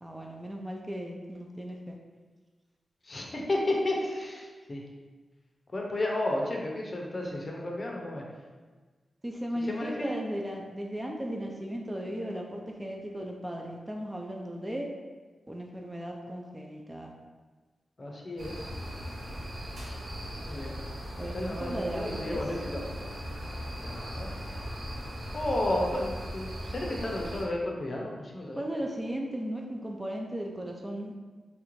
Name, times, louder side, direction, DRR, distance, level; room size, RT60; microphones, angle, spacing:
voice 1, 0.0-2.0 9.2-14.9 15.5-17.1 21.2-22.4 28.6-31.1, equal, 15° right, 1 dB, 0.3 m, -36 dB
voice 2, 3.0-4.8 5.7-8.2 9.6-10.1 18.0-18.7 20.4-20.8 21.3-23.0 23.8-24.3 25.3-28.6, left 1 dB, 40° left, -1 dB, 0.6 m, -32 dB
sound 1, 18.4-27.5, equal, 70° right, 0.8 m, -38 dB
3.1 x 2.5 x 3.0 m, 1.4 s
wide cardioid pair, 95°, 0 cm